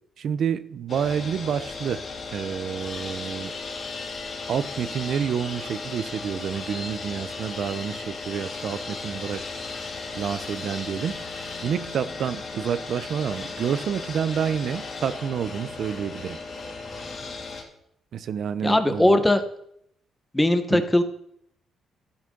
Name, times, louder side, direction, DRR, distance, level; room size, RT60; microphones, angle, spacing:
voice 1, 0.2-2.0 2.3-3.5 4.5-9.4 9.7-16.4 18.1-19.2 20.7-20.8, right 8 dB, 65° right, 14 dB, 0.7 m, -29 dB
sound 1, 0.9-17.6, left 3 dB, 50° left, 2.7 m, -36 dB
voice 2, 18.6-19.4 20.3-21.0, left 1 dB, 10° left, 8 dB, 1.2 m, -20 dB
13.0 x 6.1 x 5.4 m, 0.72 s
cardioid pair, 90°, 0 cm